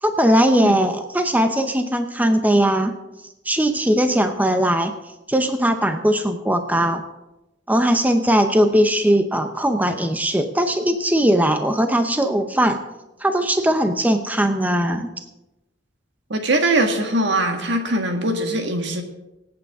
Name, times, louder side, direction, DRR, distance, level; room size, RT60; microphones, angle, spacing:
voice 1, 0.0-3.0 3.4-4.9 5.3-7.0 7.7-12.8 13.2-15.1, right 1 dB, 10° right, 7 dB, 0.7 m, -19 dB
voice 2, 16.3-19.0, right 1 dB, 70° right, 4 dB, 1.8 m, -21 dB
25.5 x 8.7 x 3.6 m, 0.98 s
head